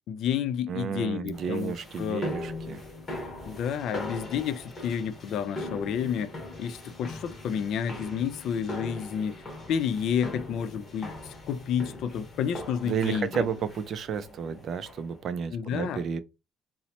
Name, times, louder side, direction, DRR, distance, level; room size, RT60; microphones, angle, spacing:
voice 1, 0.0-2.2 3.5-6.3 6.6-9.4 9.7-11.1 11.5-13.3 15.5-16.0, left 8 dB, 60° left, 0.3 m, -30 dB
voice 2, 0.7-2.8 12.8-16.2, right 7 dB, 45° right, 0.3 m, -32 dB
sound 1, 1.3-15.2, left 1 dB, 20° left, 1.1 m, -40 dB
3.9 x 2.0 x 2.8 m
cardioid pair, 170°, 0 cm